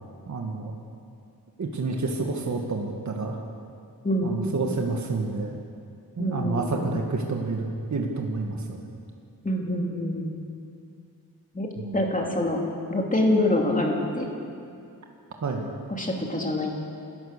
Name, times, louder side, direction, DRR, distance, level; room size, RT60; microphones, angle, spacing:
voice 1, 0.3-0.7 1.6-3.4 4.2-5.6 6.2-7.7 7.9-8.8 11.8-12.1 15.4-15.7, right 3 dB, 50° right, 1 dB, 1.7 m, -29 dB
voice 2, 4.0-4.4 6.2-7.0 9.4-10.4 11.5-12.6 12.9-14.3 15.9-16.7, left 1 dB, 20° left, 0 dB, 2.7 m, -26 dB
27.5 x 14.0 x 6.7 m, 2.5 s
wide cardioid pair, 170°, 37 cm